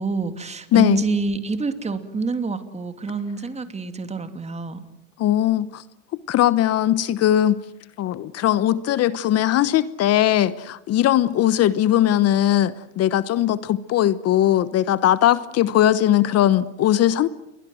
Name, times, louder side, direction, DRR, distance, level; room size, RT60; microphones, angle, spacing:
voice 1, 0.0-4.8, right 4 dB, 15° right, 9 dB, 2.8 m, -27 dB
voice 2, 0.7-1.0 5.2-5.8 6.1-7.6 8.0-17.3, left 12 dB, 40° left, 16 dB, 1.1 m, -19 dB
29.0 x 23.0 x 7.8 m, 0.85 s
supercardioid pair, 105°, 37 cm